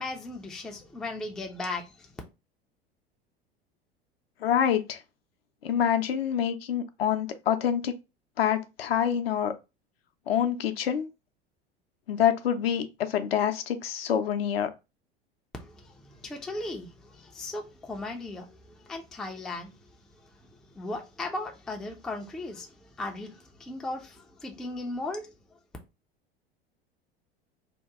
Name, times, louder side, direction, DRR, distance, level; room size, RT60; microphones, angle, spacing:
voice 1, 0.0-2.1 15.6-18.5 18.8-19.7 20.7-25.3, left 2 dB, ahead, 0.3 m, -37 dB
voice 2, 4.4-5.0 5.6-7.9 8.4-9.5 10.3-11.1 12.1-14.7, left 9 dB, 70° left, 0.5 m, -26 dB
2.8 x 2.2 x 3.5 m
figure-of-eight pair, 75°, 31 cm